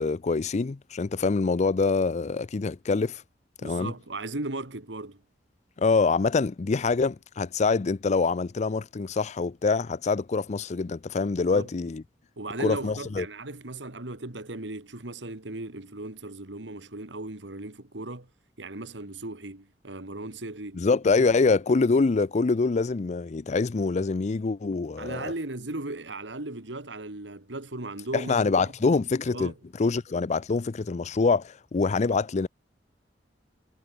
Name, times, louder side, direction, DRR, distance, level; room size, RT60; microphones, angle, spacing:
voice 1, 0.0-3.2 3.6-3.9 5.8-12.0 12.6-13.3 20.8-25.3 28.1-29.5 29.8-32.5, left 4 dB, 40° left, 0.5 m, -25 dB
voice 2, 3.6-5.2 11.4-11.7 12.4-18.3 18.6-20.9 21.2-21.6 25.0-28.4 28.8-28.9 29.3-29.5, right 2 dB, 90° right, 2.3 m, -37 dB
head